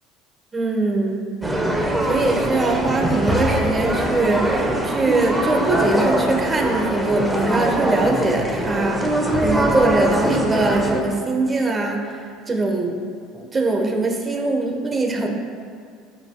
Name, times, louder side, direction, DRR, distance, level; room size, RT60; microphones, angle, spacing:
voice 1, 0.5-1.3 1.7-13.0 13.3-15.3, right 2 dB, 25° right, 2 dB, 1.2 m, -22 dB
sound 1, 1.4-11.0, right 1 dB, 5° right, 1.0 m, -22 dB
13.0 x 5.3 x 2.3 m, 2.2 s
hypercardioid pair, 85°, 0 cm